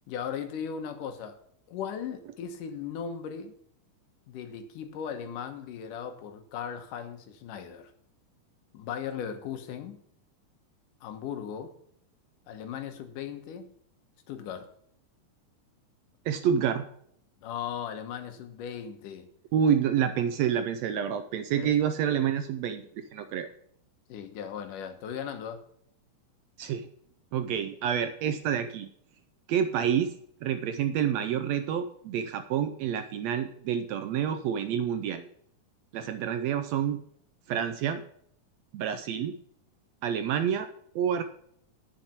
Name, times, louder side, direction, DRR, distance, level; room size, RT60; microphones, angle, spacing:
voice 1, 0.1-1.4 1.7-3.5 4.3-7.9 8.7-10.0 11.0-11.7 12.5-13.7 14.3-14.7 17.4-19.3 21.6-21.7 24.1-25.6, left 8 dB, 85° left, 7 dB, 2.8 m, -37 dB
voice 2, 16.2-16.8 19.5-23.5 26.6-26.9 27.3-28.9 29.5-30.1 30.4-35.3 35.9-37.0 37.5-38.0 38.7-39.4 40.0-40.7 40.9-41.2, right 8 dB, 80° right, 9 dB, 1.6 m, -28 dB
10.5 x 6.6 x 5.9 m, 0.67 s
omnidirectional pair, 3.6 m